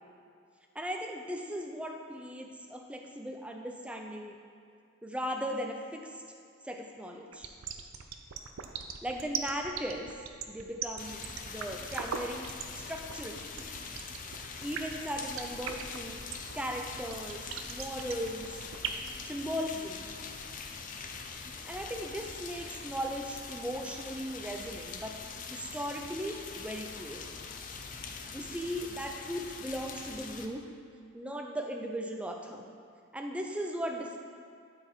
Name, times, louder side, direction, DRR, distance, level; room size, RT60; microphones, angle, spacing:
voice 1, 0.8-4.4 5.0-6.1 6.6-7.5 9.0-10.1 10.5-11.2 11.5-13.6 14.6-16.2 16.5-18.5 19.3-20.1 21.7-25.2 25.5-27.3 28.3-30.7 31.1-32.6 33.1-34.2, equal, 5° right, 2 dB, 0.6 m, -37 dB
sound 1, 7.3-19.1, right 8 dB, 85° right, 0.6 m, -38 dB
sound 2, 11.0-30.5, left 5 dB, 40° left, 0.5 m, -43 dB
12.0 x 4.8 x 4.5 m, 2.3 s
head